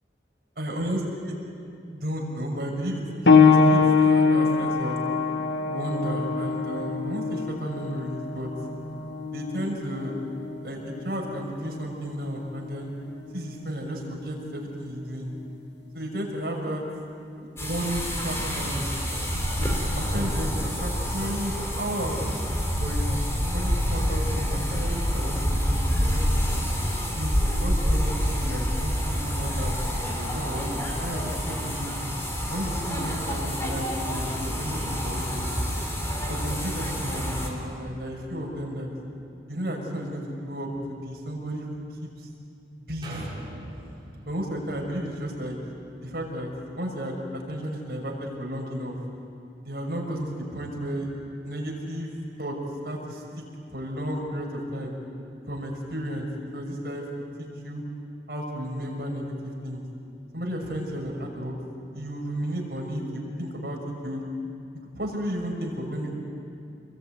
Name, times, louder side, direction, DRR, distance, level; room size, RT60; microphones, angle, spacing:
voice 1, 0.6-1.3 1.9-3.0 3.3-5.0 5.7-8.5 9.3-10.1 10.6-12.9 13.3-15.3 15.9-16.8 17.4-18.9 19.6-22.2 22.8-26.6 27.2-29.7 30.1-30.7 31.0-32.0 32.5-35.5 36.3-38.9 39.5-41.7 42.0-42.3 42.9-43.3 44.2-45.6 46.0-46.5 46.7-49.0 49.6-51.1 51.4-52.6 52.8-53.2 53.7-54.9 55.5-57.1 57.4-57.8 58.3-59.3 59.6-59.8 60.3-61.5 61.9-64.2 64.9-66.1, equal, 60° right, -1 dB, 6.3 m, -33 dB
sound 1, 3.3-13.5 14.4-14.6 15.3-15.4, left 5 dB, 85° left, 1.5 m, -24 dB
sound 2, 17.6-37.5, equal, 15° left, 3.6 m, -27 dB
sound 3, 43.0-46.8 47.3-47.4, right 1 dB, 25° right, 6.8 m, -44 dB
28.5 x 22.0 x 9.4 m, 2.5 s
head